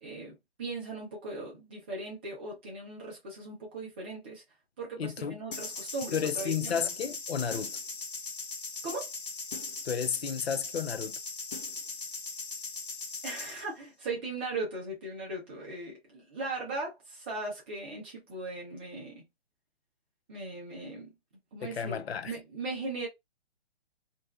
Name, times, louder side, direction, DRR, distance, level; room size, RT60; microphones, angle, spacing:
voice 1, 0.0-4.4 4.8-6.8 8.8-9.1 13.2-19.2 20.3-21.1 21.5-23.1, right 2 dB, 10° right, 0.4 m, -38 dB
voice 2, 5.0-5.4 6.1-7.8 9.8-11.2 21.6-22.3, left 7 dB, 70° left, 0.5 m, -32 dB
sound 1, 5.5-13.6, left 4 dB, 55° left, 0.8 m, -39 dB
2.5 x 2.0 x 3.0 m
figure-of-eight pair, 130°, 32 cm